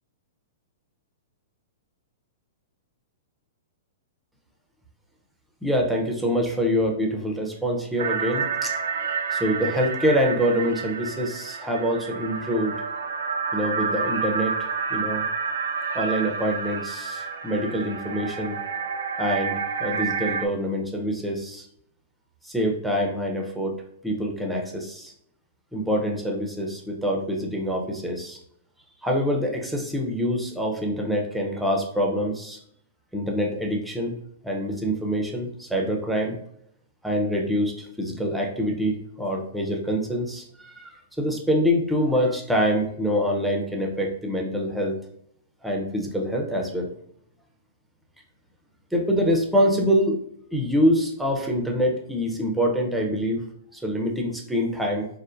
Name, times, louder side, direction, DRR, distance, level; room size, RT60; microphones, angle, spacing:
voice 1, 5.6-8.7 9.3-12.8 13.5-15.3 15.9-18.6 19.2-21.7 22.4-23.8 24.0-25.1 25.7-28.4 29.0-32.6 33.1-34.1 34.4-36.4 37.0-45.0 45.6-46.9 48.9-50.2 50.5-53.4 53.7-55.1, equal, 5° right, 0 dB, 0.6 m, -25 dB
sound 1, 8.0-20.5, right 5 dB, 65° right, 0.3 m, -29 dB
3.6 x 2.1 x 2.5 m, 0.70 s
hypercardioid pair, 110°, 0 cm